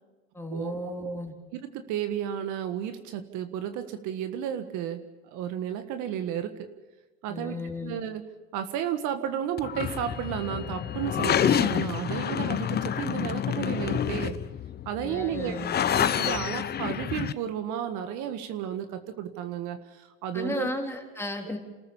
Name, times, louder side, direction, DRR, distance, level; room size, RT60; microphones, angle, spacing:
voice 1, 0.3-1.3 7.3-8.0 15.0-15.8 20.3-21.6, left 1 dB, 5° left, 1 dB, 3.5 m, -34 dB
voice 2, 1.5-5.0 5.3-6.7 7.2-8.2 8.5-14.4 14.8-15.5 15.9-20.7, right 9 dB, 60° right, 8 dB, 1.7 m, -33 dB
sound 1, 9.6-17.3, left 9 dB, 30° left, 0.7 m, -28 dB
28.0 x 14.0 x 7.1 m, 1.2 s
supercardioid pair, 95°, 33 cm